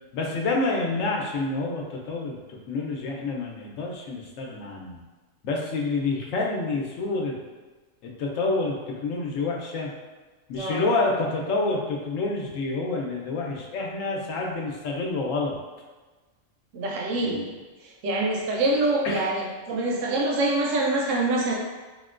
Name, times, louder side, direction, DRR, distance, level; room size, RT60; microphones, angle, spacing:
voice 1, 0.1-5.0 5.4-7.4 8.0-8.8 9.0-9.9 10.5-15.6 17.2-17.5 19.0-19.3, left 3 dB, 85° left, -1 dB, 1.0 m, -28 dB
voice 2, 16.7-17.5 18.0-21.6, right 2 dB, 80° right, -1 dB, 1.0 m, -25 dB
4.3 x 2.1 x 2.4 m, 1.3 s
omnidirectional pair, 1.3 m